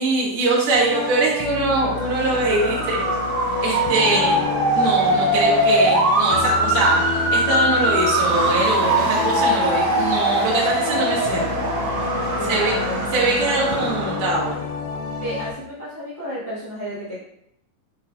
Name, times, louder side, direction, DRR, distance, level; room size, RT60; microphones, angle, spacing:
voice 1, 0.0-3.0 3.6-4.4 4.8-11.7 12.5-12.7 13.1-14.5, right 2 dB, 90° right, -3 dB, 2.7 m, -22 dB
sound 1, 0.7-15.5, left 5 dB, 85° left, 1.5 m, -29 dB
Motor vehicle (road) / Siren, 1.9-14.6, right 1 dB, 65° right, 1.9 m, -22 dB
voice 2, 12.3-13.1 15.2-17.2, equal, 70° left, -11 dB, 0.6 m, -31 dB
7.5 x 2.7 x 2.2 m, 0.78 s
omnidirectional pair, 3.6 m